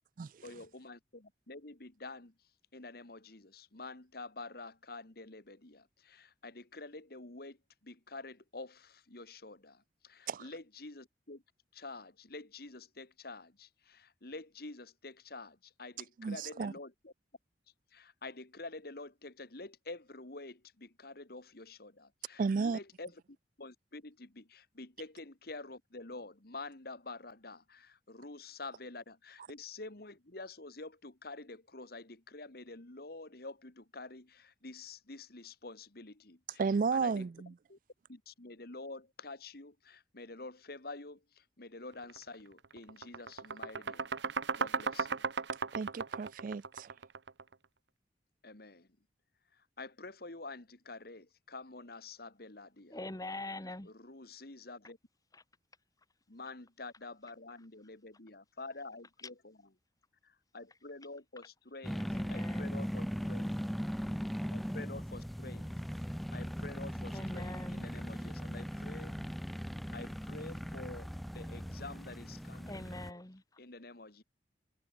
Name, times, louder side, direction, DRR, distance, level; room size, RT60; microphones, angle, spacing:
voice 1, 0.4-2.3 2.7-7.6 7.8-11.4 11.7-17.1 17.9-23.2 23.6-36.6 36.9-37.3 37.7-37.8 38.1-44.2 44.6-45.3 48.4-48.9 49.5-53.0 53.9-55.0 56.3-59.6 60.2-63.6 64.5-65.7 66.3-69.1 69.9-72.8 73.6-74.2, left 3 dB, 60° left, 2.0 m, -48 dB
voice 2, 16.2-16.7 22.4-22.8 36.6-37.5 45.7-46.9, right 5 dB, 50° right, 0.4 m, -33 dB
sound 1, 42.0-42.2 42.6-47.5, right 5 dB, 85° right, 1.0 m, -36 dB
voice 3, 52.9-53.9 55.3-55.4 62.1-62.8 67.1-68.0 72.7-73.4, left 2 dB, 20° left, 1.8 m, -43 dB
sound 2, 61.8-73.1, equal, ahead, 1.0 m, -39 dB
head